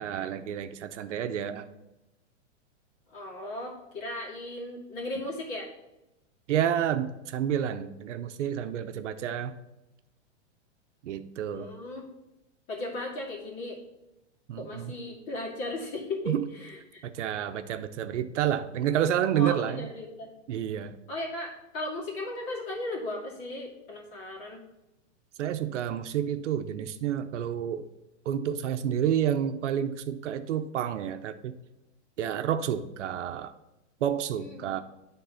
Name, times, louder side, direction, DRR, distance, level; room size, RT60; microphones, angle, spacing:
voice 1, 0.0-1.7 6.5-9.5 11.0-11.7 14.5-14.9 16.3-16.5 17.0-19.9 20.5-21.0 25.4-27.9 28.3-31.5 32.2-33.5 34.0-34.8, right 10 dB, 75° right, 9 dB, 0.8 m, -29 dB
voice 2, 3.1-5.7 11.5-12.0 12.7-13.8 14.6-17.0 17.3-17.4 19.3-20.3 21.1-24.6 34.4-34.7, left 2 dB, 35° left, -2 dB, 2.3 m, -36 dB
9.2 x 3.7 x 5.7 m, 0.95 s
supercardioid pair, 155°, 36 cm